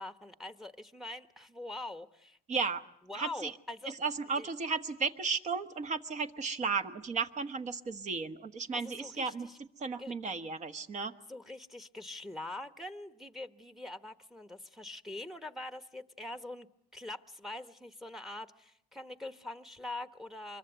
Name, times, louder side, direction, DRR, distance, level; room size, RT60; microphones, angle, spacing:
voice 1, 0.0-2.4 3.1-3.9 4.4-4.5 8.8-9.6 10.0-10.1 11.3-16.7 16.9-20.6, left 2 dB, ahead, 11 dB, 1.1 m, -43 dB
voice 2, 2.5-2.8 3.1-3.5 3.9-9.5 9.8-11.1, right 5 dB, 45° right, 9 dB, 1.4 m, -34 dB
25.0 x 22.5 x 8.1 m, 0.72 s
cardioid pair, 110°, 17 cm